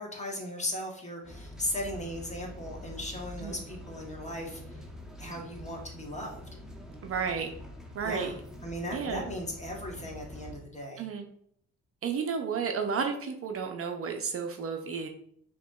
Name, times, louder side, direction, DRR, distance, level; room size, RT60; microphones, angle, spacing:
voice 1, 0.0-4.8 5.2-6.4 8.0-8.3 8.6-11.1, left 1 dB, 25° left, 0 dB, 1.1 m, -37 dB
sound 1, 1.2-10.6, left 1 dB, ahead, 0.9 m, -45 dB
voice 2, 7.0-7.5 7.9-8.3 8.9-9.2 11.0-11.3 12.0-15.1, right 6 dB, 50° right, 4 dB, 0.6 m, -32 dB
4.9 x 2.9 x 2.3 m, 0.66 s
cardioid pair, 90°, 30 cm